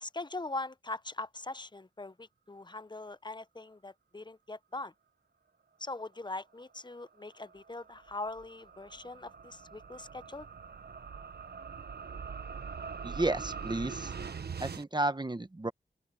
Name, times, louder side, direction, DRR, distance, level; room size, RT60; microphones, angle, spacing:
voice 1, 0.0-4.9 5.8-10.5, left 2 dB, 25° left, 0.7 m, -41 dB
sound 1, 7.0-14.8, right 5 dB, 70° right, 1.0 m, -43 dB
voice 2, 13.0-14.1 14.6-15.7, right 2 dB, 25° right, 1.2 m, -32 dB
open air
cardioid pair, 55°, 17 cm